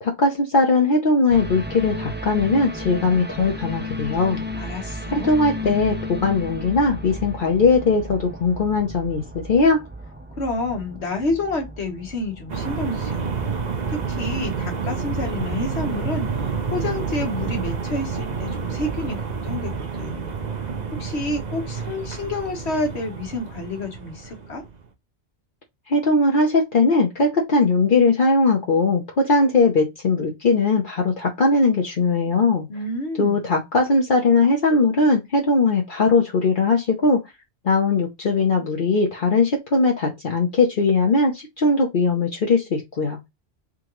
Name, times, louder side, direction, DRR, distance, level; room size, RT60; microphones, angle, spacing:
voice 1, 0.0-4.4 5.1-9.8 25.9-32.7 33.2-37.2 37.6-43.2, left 3 dB, 55° left, 0.9 m, -19 dB
sound 1, 1.3-19.7 20.0-20.1, left 1 dB, 15° right, 0.5 m, -35 dB
voice 2, 4.6-5.3 10.3-13.3 13.9-20.3 20.6-24.6 32.7-33.4, left 2 dB, 80° left, 1.5 m, -29 dB
sound 2, 12.5-24.8, right 5 dB, 45° right, 0.8 m, -29 dB
3.8 x 3.7 x 3.0 m
omnidirectional pair, 1.1 m